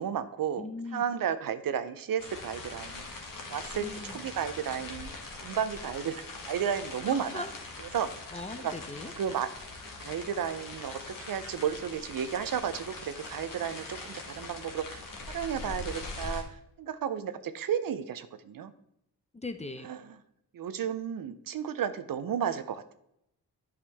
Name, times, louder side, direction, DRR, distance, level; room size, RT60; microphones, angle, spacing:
voice 1, 0.0-0.7 0.9-3.0 3.5-5.1 5.4-7.5 7.9-8.1 8.6-8.7 9.2-9.5 10.0-15.0 15.3-18.7 19.8-20.0 20.5-22.9, right 8 dB, 60° right, 12 dB, 0.6 m, -33 dB
voice 2, 0.6-1.0 3.7-4.2 7.1-7.5 8.3-9.1 19.3-19.9, left 2 dB, 15° left, 9 dB, 0.6 m, -39 dB
sound 1, 2.2-16.4, left 3 dB, 50° left, 1.5 m, -42 dB
8.6 x 5.0 x 3.4 m, 0.78 s
cardioid pair, 55°, 40 cm